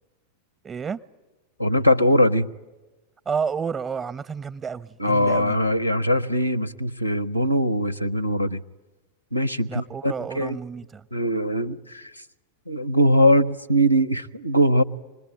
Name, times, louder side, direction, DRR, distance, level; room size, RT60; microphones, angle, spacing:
voice 1, 0.6-1.0 3.3-5.6 9.7-11.1, right 6 dB, 20° right, 0.7 m, -30 dB
voice 2, 1.6-2.5 5.0-8.6 9.3-10.6 11.1-12.1 12.7-14.8, equal, 90° left, 0.8 m, -21 dB
26.0 x 20.5 x 9.3 m
figure-of-eight pair, 90°, 0 cm